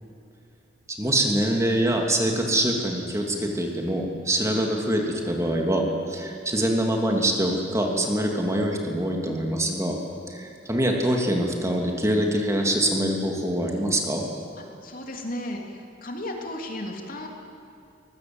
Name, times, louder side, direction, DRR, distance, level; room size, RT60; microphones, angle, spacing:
voice 1, 1.0-10.0 10.3-14.2, right 1 dB, 15° right, 1 dB, 2.9 m, -24 dB
voice 2, 14.8-17.3, left 1 dB, 50° left, 1 dB, 3.1 m, -34 dB
23.5 x 21.0 x 8.0 m, 2.7 s
head